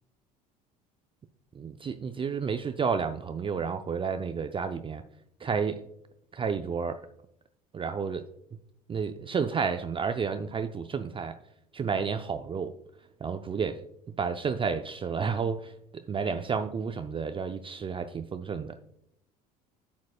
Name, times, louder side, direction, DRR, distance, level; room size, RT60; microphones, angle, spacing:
voice 1, 1.5-5.0 5.4-5.8 6.3-7.1 7.7-8.3 8.9-11.4 11.7-12.8 13.2-13.8 14.2-18.8, right 6 dB, 25° right, 9 dB, 0.5 m, -31 dB
11.5 x 7.4 x 2.3 m, 0.77 s
hypercardioid pair, 65°, 21 cm